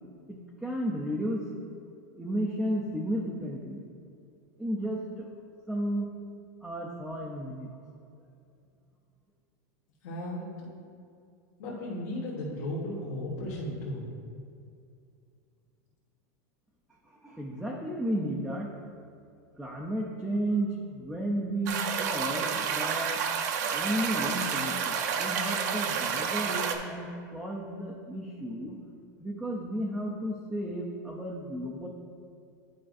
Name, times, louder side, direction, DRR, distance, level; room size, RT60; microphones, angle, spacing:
voice 1, 0.3-1.5 2.1-3.9 4.6-5.3 5.7-6.1 6.6-7.7 17.0-18.7 19.6-23.2 23.6-28.8 29.2-31.9, right 1 dB, 5° right, -3 dB, 0.4 m, -33 dB
voice 2, 10.0-10.7 11.6-14.1, left 1 dB, 70° left, -6 dB, 1.4 m, -35 dB
sound 1, 21.7-26.8, right 7 dB, 65° right, 0.6 m, -30 dB
11.0 x 5.0 x 2.5 m, 2.4 s
supercardioid pair, 170°, 10 cm